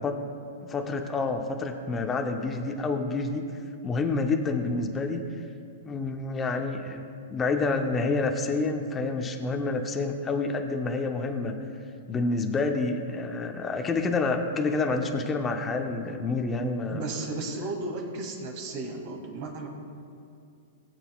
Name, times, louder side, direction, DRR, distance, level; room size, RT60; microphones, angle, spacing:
voice 1, 0.6-3.4 3.8-5.2 5.8-7.0 7.3-11.6 12.1-17.0, left 3 dB, 15° left, 4 dB, 0.7 m, -28 dB
voice 2, 16.9-19.7, right 2 dB, 45° right, 0 dB, 2.2 m, -34 dB
19.5 x 8.0 x 2.3 m, 2.5 s
hypercardioid pair, 145°, 0 cm